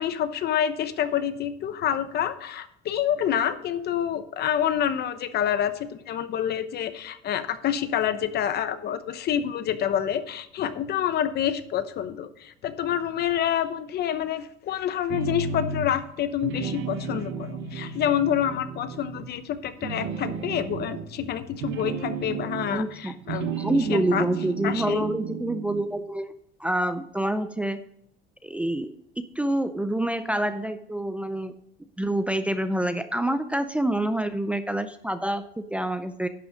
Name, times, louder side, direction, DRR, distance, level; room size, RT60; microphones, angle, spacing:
voice 1, 0.0-24.3 24.6-25.0, left 9 dB, 50° left, 11 dB, 0.9 m, -27 dB
sound 1, 15.1-16.1 16.4-19.4 19.8-22.9 23.2-25.9, right 6 dB, 70° right, 1.2 m, -33 dB
voice 2, 22.7-23.1 23.6-26.3 26.6-27.8 28.4-31.5 32.0-36.3, right 1 dB, 5° right, 9 dB, 0.4 m, -27 dB
11.0 x 6.0 x 5.1 m, 0.74 s
cardioid pair, 125°, 21 cm